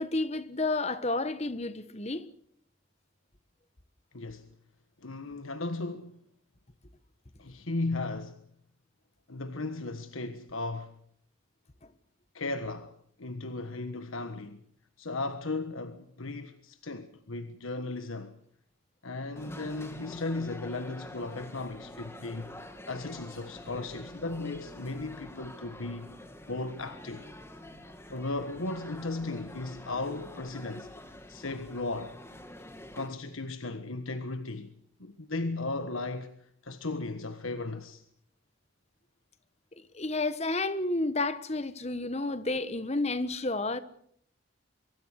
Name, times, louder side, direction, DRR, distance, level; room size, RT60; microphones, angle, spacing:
voice 1, 0.0-2.2 39.9-43.8, left 2 dB, 30° left, 1.3 m, -31 dB
voice 2, 4.1-4.5 5.0-6.2 7.4-8.4 9.3-10.9 12.3-14.6 15.0-18.3 19.0-26.1 26.5-27.3 28.1-32.2 32.9-34.7 35.0-38.0, left 2 dB, 80° left, 1.4 m, -36 dB
sound 1, 19.4-33.1, left 1 dB, 10° left, 2.3 m, -47 dB
24.0 x 23.5 x 6.5 m
head